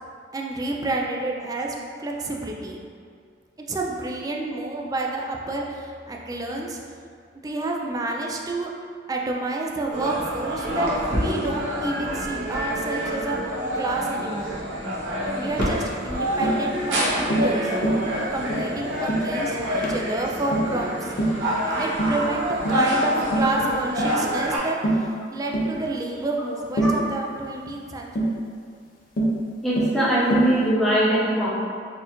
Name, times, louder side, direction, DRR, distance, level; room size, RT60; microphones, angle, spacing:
voice 1, 0.3-2.8 3.7-6.8 7.4-8.7 9.1-14.6 15.4-17.7 18.3-21.1 21.8-28.1, right 2 dB, 20° right, 0 dB, 0.3 m, -29 dB
sound 1, 9.9-24.6, equal, 80° right, 0.9 m, -27 dB
Tap, 15.6-15.8 16.4-16.6 17.3-17.5 17.8-18.1 18.5-18.7 19.1-19.3 19.8-20.0 20.5-20.8 21.2-21.4 22.0-22.2 22.6-22.9 23.3-23.5 24.0-24.2 24.8-25.1 25.5-25.7 26.8-27.0 28.1-28.4 29.2-29.4 29.8-30.0 30.3-30.6, right 2 dB, 50° left, 0.5 m, -24 dB
voice 2, 29.6-31.5, right 1 dB, ahead, -9 dB, 0.8 m, -21 dB
4.1 x 2.4 x 2.9 m, 2.2 s
head